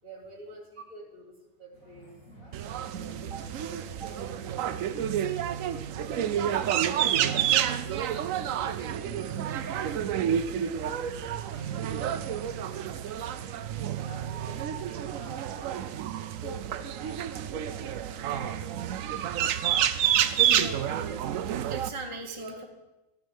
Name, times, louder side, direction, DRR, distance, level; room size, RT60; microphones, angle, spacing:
voice 1, 0.0-2.1 2.6-4.9 5.4-6.0 6.9-10.9 11.2-13.4 13.9-16.0 16.4-19.0 22.2-22.7, right 2 dB, 50° right, 1 dB, 3.3 m, -47 dB
sound 1, 1.7-13.3, right 1 dB, 50° left, 3.9 m, -53 dB
sound 2, 2.5-21.9, right 10 dB, 65° right, 0.8 m, -29 dB
voice 2, 20.5-21.2 21.7-22.7, right 3 dB, 25° right, 3 dB, 0.9 m, -38 dB
13.5 x 9.5 x 5.4 m, 0.99 s
omnidirectional pair, 1.9 m